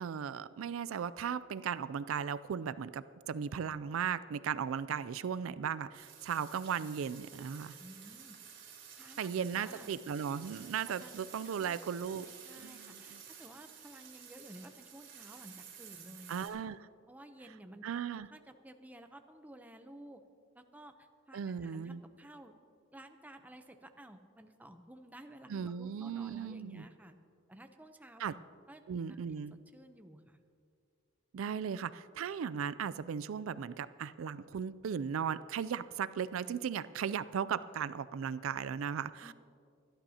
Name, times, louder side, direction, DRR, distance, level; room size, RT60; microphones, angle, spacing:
voice 1, 0.0-7.8 9.2-12.3 12.6-13.2 16.3-16.9 17.8-18.3 21.3-22.0 25.5-26.9 28.2-28.3 28.9-29.6 31.3-39.3, right 7 dB, 85° right, 16 dB, 0.4 m, -37 dB
sound 1, 5.9-16.5, right 8 dB, 65° right, 3.3 m, -52 dB
voice 2, 7.8-8.4 9.0-9.9 11.0-11.7 12.1-12.2 12.5-16.4 17.1-17.8 18.3-20.2 20.5-22.5 22.9-27.2 27.5-28.2 28.7-28.8 29.1-29.2 29.5-30.4 39.2-39.3, right 1 dB, 10° right, 6 dB, 0.7 m, -53 dB
24.0 x 11.5 x 2.8 m, 2.3 s
head